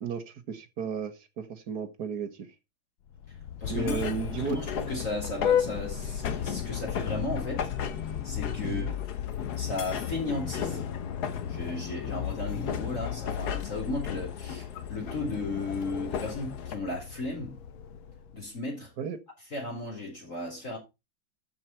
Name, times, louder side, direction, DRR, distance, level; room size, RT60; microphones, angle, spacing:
voice 1, 0.0-2.5 3.7-4.6 8.6-8.9 19.0-19.2, right 7 dB, 55° right, 1.5 m, -34 dB
Vehicle horn car horn honking, 3.1-18.5, left 9 dB, 80° left, 1.6 m, -36 dB
sound 1, 3.6-16.7, left 8 dB, 55° left, 1.4 m, -36 dB
voice 2, 3.6-4.0 4.4-7.7 8.2-8.8 9.6-10.9 11.4-17.6 18.3-18.9 19.5-20.8, left 2 dB, 40° left, 4.2 m, -35 dB
13.0 x 5.5 x 4.4 m
omnidirectional pair, 2.2 m